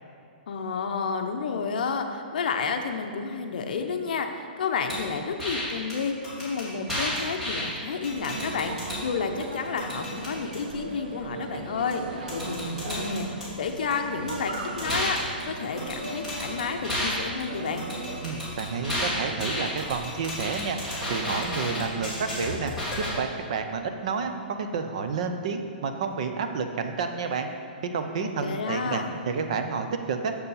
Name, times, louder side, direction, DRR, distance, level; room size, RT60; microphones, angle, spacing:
voice 1, 0.5-17.9 28.2-29.1, left 5 dB, 60° left, 5 dB, 0.7 m, -31 dB
sound 1, 4.9-5.0 5.4-5.6 5.9-6.0 6.2-7.6 8.0-9.0 9.4-10.6 11.9-12.0 12.3-13.9 14.3-17.1 17.4-23.1, left 1 dB, 5° right, 1.8 m, -32 dB
sound 2, 8.1-22.4, right 3 dB, 70° right, 1.0 m, -39 dB
voice 2, 18.2-20.8 21.1-22.7 23.0-27.5 27.9-30.5, right 5 dB, 40° right, 6 dB, 0.6 m, -30 dB
6.8 x 6.7 x 5.5 m, 2.5 s
hypercardioid pair, 175°, 5 cm